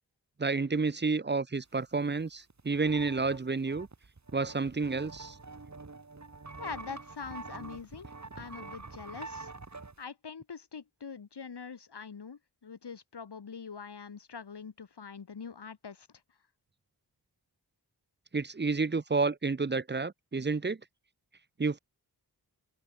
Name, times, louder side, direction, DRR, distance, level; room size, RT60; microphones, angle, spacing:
voice 1, 0.4-3.9 4.3-5.3 18.3-20.8 21.6-21.8, right 4 dB, 25° right, 0.7 m, -30 dB
sound 1, 2.2-2.3 2.5-10.0, right 3 dB, 45° right, 3.1 m, -46 dB
voice 2, 6.6-8.1 8.4-9.5 10.0-16.1, left 6 dB, 80° left, 2.6 m, -44 dB
open air
wide cardioid pair, 60°, 40 cm